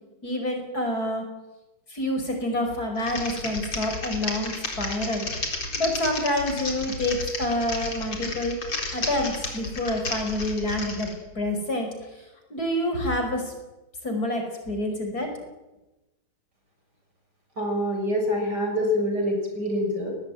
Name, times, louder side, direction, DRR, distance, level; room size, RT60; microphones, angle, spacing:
voice 1, 0.2-1.2 1.9-5.3 5.8-8.6 8.9-11.1 11.4-11.9 12.5-13.5 14.0-15.3, left 1 dB, 45° left, 4 dB, 5.8 m, -27 dB
Typing, 3.0-11.1, left 3 dB, 80° left, 5.0 m, -32 dB
voice 2, 17.6-20.1, left 1 dB, 50° right, 3 dB, 7.0 m, -25 dB
22.0 x 19.5 x 9.3 m, 1.0 s
omnidirectional pair, 2.2 m